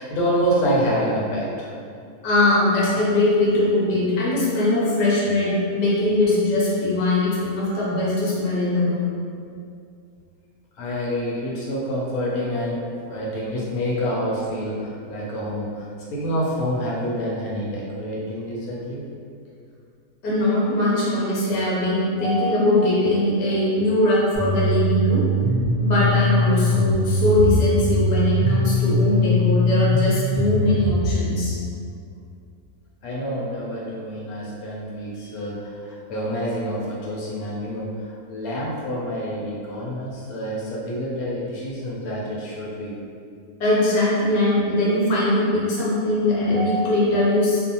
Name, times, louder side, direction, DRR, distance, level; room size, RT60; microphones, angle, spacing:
voice 1, 0.0-1.7 10.8-19.1 33.0-43.0, equal, 80° left, -5 dB, 1.0 m, -27 dB
voice 2, 2.2-9.1 20.2-25.2 25.8-31.5 43.6-47.6, left 2 dB, 50° left, -7 dB, 0.7 m, -21 dB
sound 1, 24.3-31.2, equal, 30° right, 0.6 m, -21 dB
2.5 x 2.2 x 2.7 m, 2.4 s
omnidirectional pair, 1.6 m